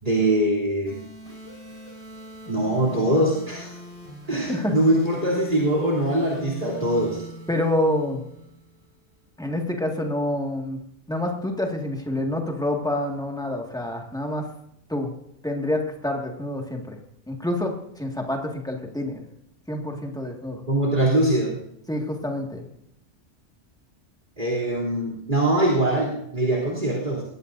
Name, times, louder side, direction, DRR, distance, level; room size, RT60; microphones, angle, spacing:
voice 1, 0.0-1.0 2.5-3.7 4.3-7.2 20.7-21.6 24.4-27.2, right 1 dB, 40° right, -2 dB, 3.5 m, -22 dB
sound 1, 0.9-8.8, equal, 25° left, 5.9 m, -41 dB
voice 2, 4.3-4.8 7.5-8.2 9.4-10.8 11.1-14.5 14.9-15.1 15.4-17.0 17.3-19.2 19.7-20.6 21.9-22.6, left 1 dB, 5° left, 1 dB, 1.9 m, -27 dB
21.5 x 17.0 x 2.7 m, 0.76 s
omnidirectional pair, 1.2 m